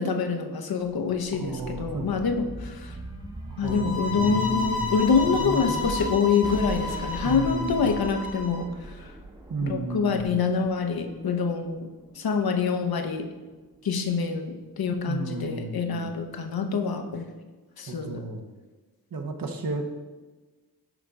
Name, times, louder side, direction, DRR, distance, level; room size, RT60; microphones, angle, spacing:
voice 1, 0.0-2.9 3.6-8.7 9.6-11.9 12.2-13.3 13.8-17.3 17.8-18.2, left 5 dB, 65° left, 5 dB, 0.7 m, -26 dB
sound 1, 0.8-11.6 12.2-13.3, right 1 dB, 10° right, 0.8 m, -38 dB
voice 2, 1.3-2.2 3.6-5.0 7.2-8.0 9.5-10.5 15.0-16.1 17.9-18.5 19.1-19.8, right 3 dB, 60° right, 4 dB, 0.9 m, -33 dB
sound 2, 3.7-8.6, left 3 dB, 35° left, 0.8 m, -32 dB
6.4 x 3.8 x 4.6 m, 1.3 s
cardioid pair, 60°, 39 cm